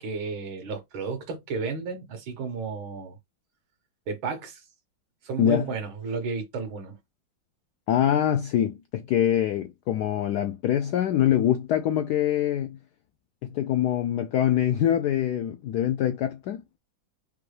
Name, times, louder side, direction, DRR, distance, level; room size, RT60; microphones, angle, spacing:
voice 1, 0.0-3.2 4.1-4.6 5.2-7.0, right 4 dB, 75° right, 2.1 m, -32 dB
voice 2, 5.4-5.7 7.9-12.8 13.4-16.6, left 10 dB, 80° left, 0.9 m, -24 dB
5.3 x 2.3 x 3.2 m
omnidirectional pair, 2.2 m